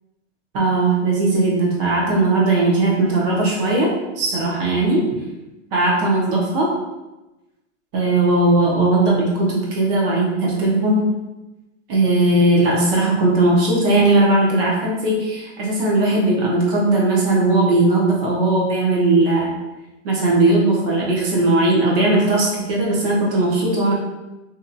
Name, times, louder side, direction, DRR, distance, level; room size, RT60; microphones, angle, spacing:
voice 1, 0.5-5.0 5.7-6.7 7.9-11.1 11.9-19.5 20.0-23.9, right 2 dB, 50° right, -4 dB, 0.7 m, -18 dB
2.7 x 2.2 x 2.6 m, 1.0 s
supercardioid pair, 160°, 37 cm